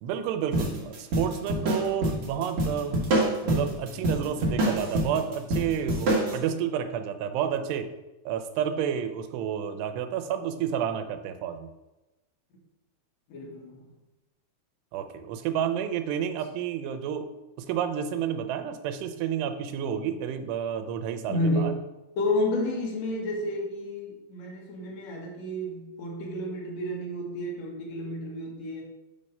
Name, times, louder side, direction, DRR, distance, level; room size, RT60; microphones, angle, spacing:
voice 1, 0.0-3.1 3.4-7.9 8.3-11.7 14.9-17.3 17.6-21.7, right 8 dB, 90° right, 8 dB, 2.7 m, -30 dB
sound 1, 0.5-6.4, right 1 dB, 60° right, 1.5 m, -27 dB
voice 2, 13.3-13.9 21.3-21.7 22.2-28.8, left 1 dB, 60° left, -2 dB, 1.9 m, -30 dB
6.7 x 3.3 x 5.4 m, 1.0 s
omnidirectional pair, 4.7 m